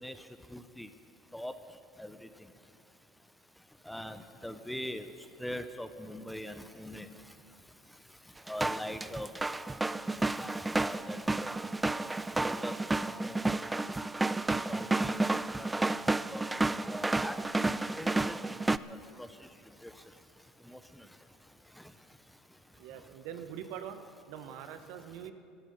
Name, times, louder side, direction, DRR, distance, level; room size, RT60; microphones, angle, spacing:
voice 1, 0.5-0.9 1.3-1.5 2.0-2.1 3.9-5.0 5.4-7.1 8.5-9.3 10.4-11.5 12.4-13.0 13.2-13.6 14.7-15.3 15.6-15.7 16.3-17.4 18.0-18.6 19.8-19.9 20.7-20.8, left 1 dB, 5° left, 10 dB, 0.8 m, -41 dB
sound 1, 8.5-18.8, right 2 dB, 10° right, 0.3 m, -31 dB
voice 2, 22.7-24.0 24.3-25.3, right 9 dB, 70° right, 8 dB, 1.1 m, -43 dB
16.5 x 13.0 x 5.5 m, 2.6 s
supercardioid pair, 95°, 0 cm